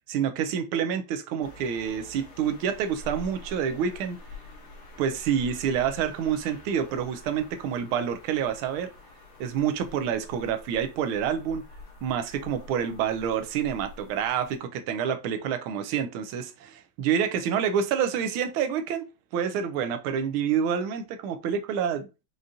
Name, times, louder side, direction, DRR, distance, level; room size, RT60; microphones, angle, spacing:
voice 1, 0.1-4.2 5.0-8.9 9.4-11.6 12.0-19.0 19.3-22.1, right 8 dB, 80° right, 1.4 m, -28 dB
sound 1, 1.4-14.6, left 2 dB, 80° left, 1.9 m, -46 dB
5.1 x 2.4 x 2.7 m
omnidirectional pair, 2.3 m